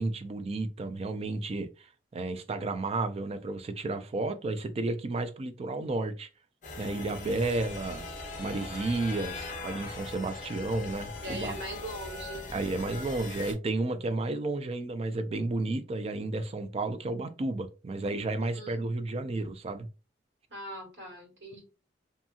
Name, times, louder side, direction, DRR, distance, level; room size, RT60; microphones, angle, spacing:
voice 1, 0.0-1.9 2.1-6.3 6.8-8.0 8.4-11.6 12.5-19.9, right 2 dB, 35° right, 0.4 m, -32 dB
sound 1, 6.6-13.5, left 3 dB, 45° left, 0.6 m, -40 dB
voice 2, 11.2-12.5 18.4-18.8 20.5-21.6, right 1 dB, 75° right, 1.6 m, -41 dB
2.7 x 2.6 x 2.3 m
head